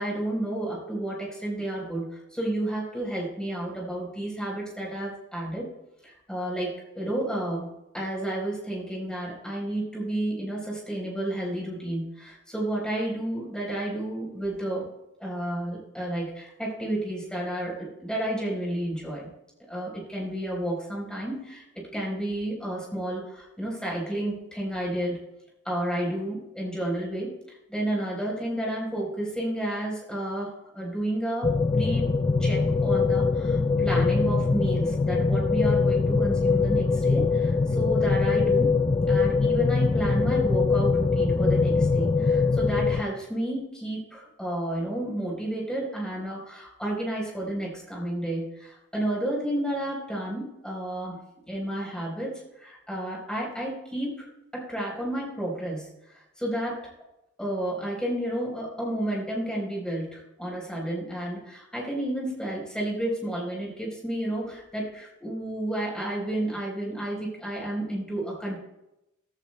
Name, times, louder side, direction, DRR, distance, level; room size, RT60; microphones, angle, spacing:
voice 1, 0.0-5.7 6.0-7.7 7.9-14.9 15.2-19.3 19.7-21.6 21.9-25.2 25.6-32.1 32.4-38.7 39.1-51.2 51.5-56.9 57.4-68.6, right 1 dB, 5° left, -3 dB, 4.0 m, -31 dB
sound 1, 31.4-43.0, left 4 dB, 25° left, 0.3 m, -23 dB
16.0 x 15.0 x 2.2 m, 0.91 s
head